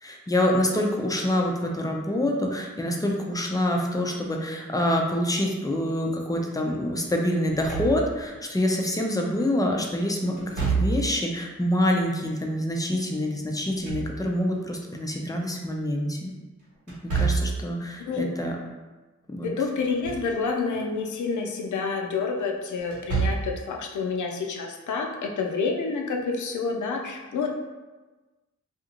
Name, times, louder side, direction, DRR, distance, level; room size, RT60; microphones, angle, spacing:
voice 1, 0.0-16.3 17.2-18.6 19.3-19.5, left 1 dB, 10° left, 1 dB, 0.4 m, -26 dB
Slam / Thump thud, 7.4-8.4 10.4-11.3 13.5-14.6 16.9-17.7 19.7-20.3 20.7-20.8 22.8-23.6, right 4 dB, 75° right, 1.1 m, -28 dB
voice 2, 19.4-27.5, left 4 dB, 75° left, 2 dB, 0.5 m, -28 dB
2.5 x 2.4 x 2.9 m, 1.2 s
cardioid pair, 75°, 30 cm